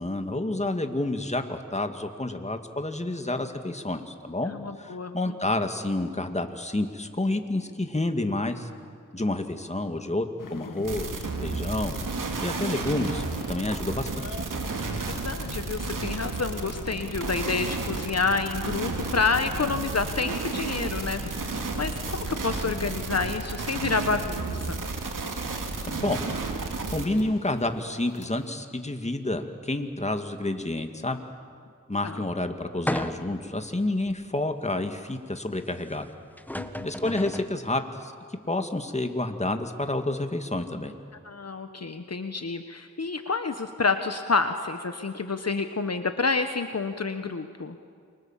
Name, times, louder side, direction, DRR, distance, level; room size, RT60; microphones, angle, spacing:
voice 1, 0.0-4.5 4.8-8.7 9.1-12.0 12.4-14.3 25.8-26.3 26.9-31.2 31.9-36.1 36.8-38.1 38.5-40.9, left 2 dB, 20° left, 6 dB, 2.2 m, -29 dB
voice 2, 4.5-5.3 14.8-21.5 21.7-24.8 32.0-32.2 36.6-36.9 41.2-47.8, left 4 dB, 55° left, 8 dB, 1.3 m, -29 dB
sound 1, 10.4-28.5, left 5 dB, 85° left, 1.8 m, -44 dB
sound 2, 10.8-27.1, right 3 dB, 90° right, 2.6 m, -32 dB
sound 3, 32.9-33.5 34.1-34.2 36.0-36.1 36.4-37.6, left 1 dB, 5° left, 1.5 m, -32 dB
28.5 x 24.5 x 7.5 m, 2.2 s
cardioid pair, 55°, 31 cm